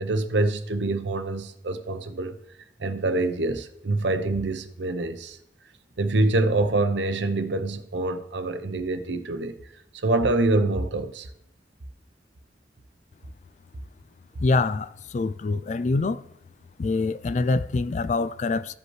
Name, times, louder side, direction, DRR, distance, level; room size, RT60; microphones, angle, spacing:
voice 1, 0.0-2.4 2.8-5.4 6.0-9.5 10.0-11.3, right 2 dB, 80° right, 0.7 m, -25 dB
voice 2, 14.4-16.2 16.8-18.7, left 3 dB, 40° left, 0.3 m, -25 dB
15.5 x 5.2 x 3.1 m
head